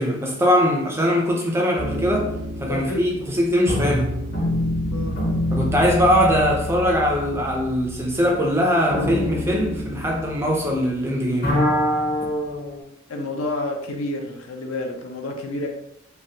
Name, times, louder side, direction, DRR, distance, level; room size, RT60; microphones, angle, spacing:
voice 1, 0.0-2.3 2.6-4.2 5.5-11.6, equal, 10° right, 0 dB, 0.4 m, -21 dB
sound 1, 1.8-11.0 11.3-12.8, left 1 dB, 45° left, 0.9 m, -26 dB
voice 2, 2.7-3.0 4.9-5.2 13.1-15.7, left 2 dB, 75° left, 2 dB, 0.6 m, -29 dB
3.2 x 2.4 x 2.7 m, 0.75 s
head